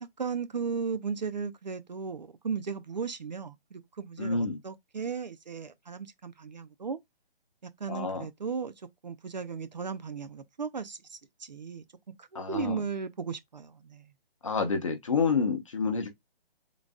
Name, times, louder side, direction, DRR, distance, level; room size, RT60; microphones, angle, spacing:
voice 1, 0.0-7.0 7.6-11.8 12.2-14.1, right 5 dB, 50° right, 0.5 m, -36 dB
voice 2, 4.2-4.6 7.9-8.3 12.3-12.8 14.4-16.1, left 4 dB, 35° left, 0.7 m, -28 dB
3.9 x 2.2 x 3.5 m
hypercardioid pair, 170°, 29 cm